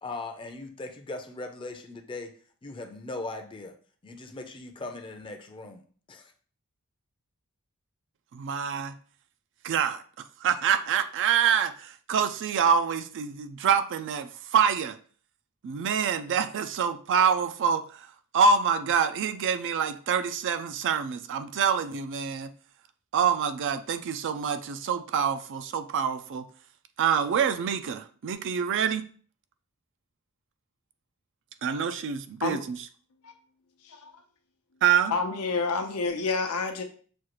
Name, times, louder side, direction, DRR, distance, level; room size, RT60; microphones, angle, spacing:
voice 1, 0.0-2.3 2.6-3.7 4.0-5.8 6.1-6.3, left 2 dB, 20° left, 4 dB, 0.5 m, -39 dB
voice 2, 8.3-8.9 9.6-10.0 10.4-15.0 15.6-17.8 18.3-22.5 23.1-26.4 27.0-29.1 31.6-32.8 34.8-35.1, right 7 dB, 55° right, 9 dB, 0.4 m, -26 dB
voice 3, 35.1-36.8, left 4 dB, 85° left, 5 dB, 0.7 m, -29 dB
6.2 x 2.4 x 3.0 m, 0.43 s
head